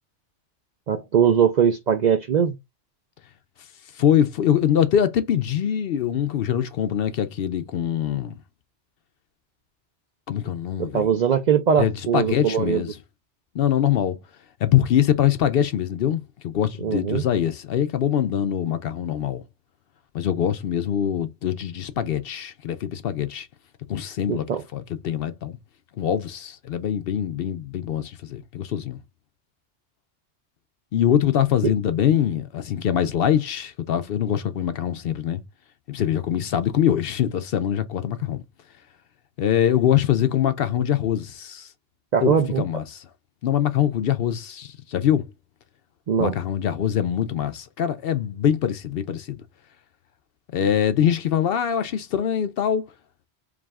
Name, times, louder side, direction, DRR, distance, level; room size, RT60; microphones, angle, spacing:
voice 1, 0.9-2.6 10.8-12.8 16.8-17.2 24.3-24.6 31.6-31.7 42.1-42.6 46.1-46.3, right 8 dB, 60° right, 0.4 m, -21 dB
voice 2, 4.0-8.4 10.3-11.1 11.8-13.0 13.5-14.2 14.6-19.4 20.1-23.5 23.9-24.5 24.7-25.6 26.0-29.0 30.9-35.4 35.9-38.4 39.4-41.7 42.2-43.0 43.4-45.2 46.2-49.4 50.5-52.8, left 10 dB, 65° left, 0.7 m, -23 dB
4.8 x 2.3 x 3.4 m
omnidirectional pair, 1.2 m